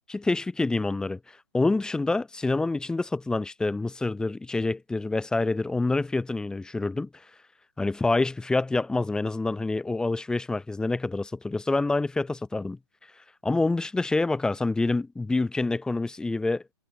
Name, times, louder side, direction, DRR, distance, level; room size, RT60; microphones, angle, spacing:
voice 1, 0.1-1.2 1.5-7.1 7.8-12.8 13.4-16.7, left 3 dB, 5° left, 0.6 m, -27 dB
hypercardioid pair, 130°, 16 cm